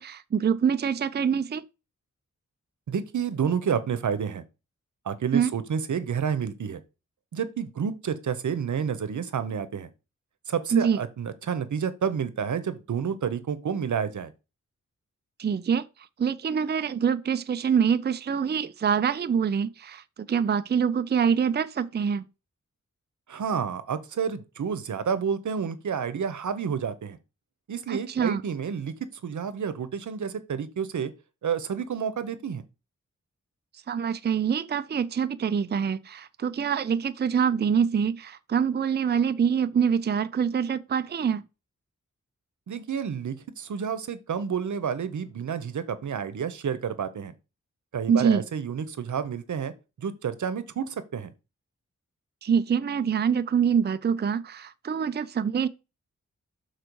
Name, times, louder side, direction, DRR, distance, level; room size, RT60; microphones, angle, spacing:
voice 1, 0.0-1.6 5.3-5.5 10.7-11.0 15.4-15.9 16.2-20.0 20.3-22.2 27.9-28.4 33.9-41.4 48.1-48.4 52.4-55.7, right 7 dB, 35° right, 0.4 m, -25 dB
voice 2, 2.9-4.4 5.0-6.8 7.3-9.9 10.5-14.3 23.3-27.2 27.7-28.9 29.2-31.1 31.4-32.6 42.7-47.3 47.9-49.7 50.0-51.3, right 7 dB, 85° right, 0.8 m, -30 dB
6.6 x 4.4 x 4.6 m
wide cardioid pair, 90°, 29 cm